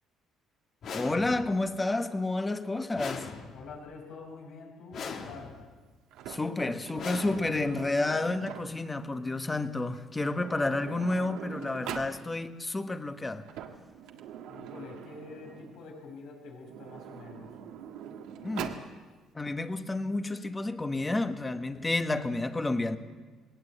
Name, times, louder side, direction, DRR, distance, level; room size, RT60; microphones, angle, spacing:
sound 1, 0.8-1.7 2.9-3.9 4.9-5.7 7.0-7.9, left 5 dB, 55° left, 2.3 m, -40 dB
voice 1, 0.9-3.3 6.3-13.5 18.4-18.8 19.3-23.0, left 2 dB, 15° left, 1.3 m, -30 dB
voice 2, 3.5-5.5 14.4-17.5, left 4 dB, 75° left, 5.8 m, -46 dB
Sliding door, 6.1-9.0 9.9-10.0 10.3-12.2 13.3-15.8 16.6-18.9, right 9 dB, 80° right, 1.6 m, -43 dB
19.5 x 18.5 x 8.0 m
cardioid pair, 95°, 0 cm